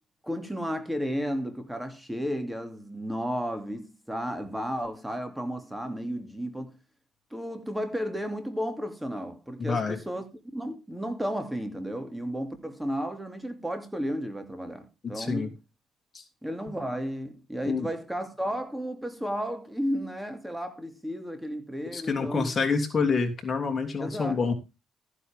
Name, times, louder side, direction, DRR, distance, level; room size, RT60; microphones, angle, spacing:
voice 1, 0.2-6.8 7.3-10.2 10.5-15.5 16.4-22.5 24.0-24.4, equal, 5° right, 2.8 m, -33 dB
voice 2, 9.6-10.0 15.1-15.5 16.1-16.2 17.6-17.9 21.9-24.5, left 4 dB, 35° left, 3.2 m, -27 dB
14.5 x 9.8 x 3.7 m
cardioid pair, 90°, 0 cm